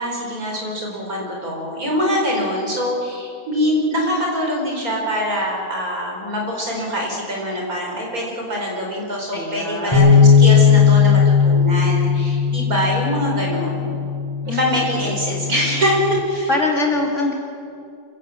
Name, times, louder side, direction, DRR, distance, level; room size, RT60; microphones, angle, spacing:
voice 1, 0.0-14.0 14.5-16.5, equal, 75° right, 0 dB, 5.3 m, -23 dB
voice 2, 9.3-10.0 14.4-14.6 16.5-17.3, left 2 dB, 50° left, -1 dB, 3.3 m, -22 dB
sound 1, 9.9-16.2, left 6 dB, 15° left, 5.7 m, -17 dB
26.0 x 16.5 x 7.7 m, 2.5 s
omnidirectional pair, 1.6 m